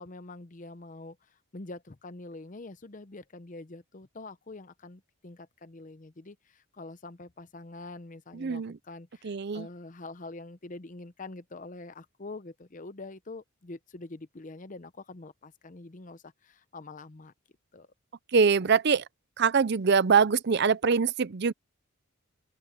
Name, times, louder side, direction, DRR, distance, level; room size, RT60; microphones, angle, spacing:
voice 1, 0.0-17.3 17.7-17.9, left 2 dB, 35° left, 0.7 m, -45 dB
voice 2, 8.3-8.8 9.2-9.7 18.3-19.0 19.4-21.5, right 5 dB, 50° right, 0.5 m, -23 dB
open air
head